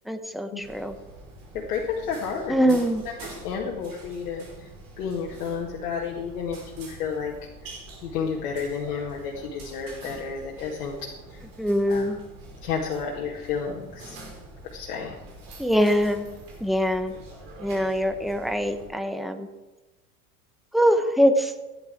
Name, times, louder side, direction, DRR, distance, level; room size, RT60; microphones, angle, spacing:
voice 1, 0.1-0.9 2.5-3.0 11.6-12.2 15.6-16.3 16.6-17.2 17.6-19.5 20.7-21.5, equal, ahead, 8 dB, 1.3 m, -23 dB
sound 1, 0.6-18.9, right 2 dB, 50° right, 5.3 m, -45 dB
voice 2, 1.5-2.8 3.1-4.7 5.0-7.3 7.6-7.7 8.0-11.4 11.9-12.1 12.6-14.2 14.6-15.2, left 6 dB, 60° left, -2 dB, 2.3 m, -31 dB
15.5 x 10.5 x 4.6 m, 1.1 s
hypercardioid pair, 85°, 45 cm